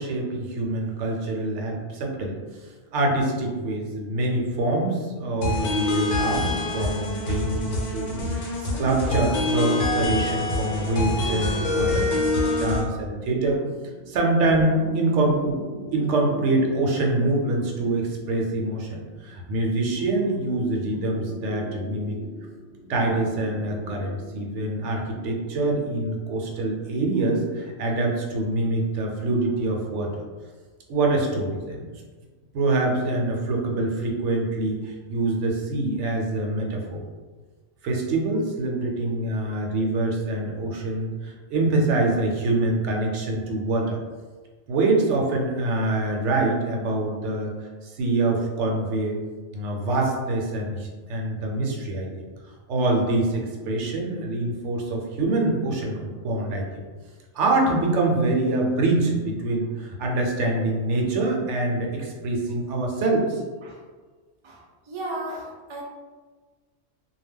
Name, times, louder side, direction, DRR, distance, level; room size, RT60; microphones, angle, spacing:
voice 1, 0.0-2.4 2.9-13.6 14.1-15.5 15.9-22.2 22.9-30.2 30.9-31.9 32.5-37.0 37.8-44.0 44.7-47.5 47.8-49.2 49.5-52.1 52.7-56.6 57.3-63.4, right 2 dB, 80° right, 0 dB, 0.9 m, -25 dB
sound 1, 5.4-12.8, left 2 dB, 85° left, 1.0 m, -25 dB
sound 2, 12.5-24.9, right 1 dB, 50° left, 0.4 m, -41 dB
voice 2, 64.4-65.8, right 1 dB, 50° right, -2 dB, 0.3 m, -35 dB
2.2 x 2.1 x 3.4 m, 1.4 s
omnidirectional pair, 1.2 m